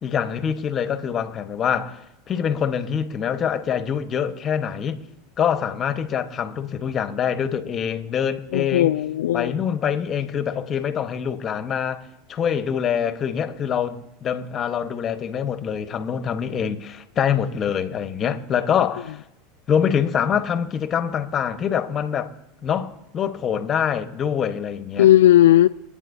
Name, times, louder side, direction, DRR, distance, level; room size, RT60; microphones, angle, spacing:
voice 1, 0.0-2.0 2.3-5.0 5.4-9.0 9.3-19.2 19.7-22.3 22.6-25.1, left 8 dB, 35° left, 1.2 m, -25 dB
voice 2, 8.5-9.5 25.0-25.7, left 13 dB, 80° left, 0.3 m, -15 dB
26.0 x 9.0 x 2.7 m
hypercardioid pair, 100°, 0 cm